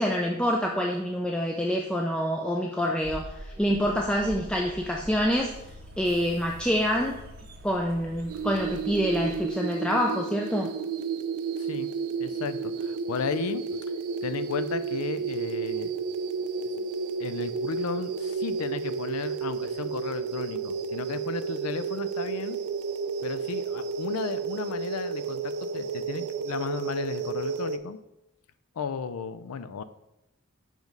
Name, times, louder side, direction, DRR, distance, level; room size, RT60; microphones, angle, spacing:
voice 1, 0.0-5.5 6.0-7.2 7.6-10.7, equal, 5° left, 0 dB, 0.3 m, -26 dB
sound 1, 3.0-9.4, right 1 dB, 45° right, 0.6 m, -44 dB
sound 2, 8.3-27.8, right 5 dB, 90° right, 0.4 m, -32 dB
voice 2, 12.2-13.8 14.2-15.9 16.8-16.9 17.2-22.6 23.2-28.0 28.8-29.8, left 6 dB, 85° left, 12 dB, 0.4 m, -34 dB
5.0 x 3.9 x 5.2 m, 0.89 s
head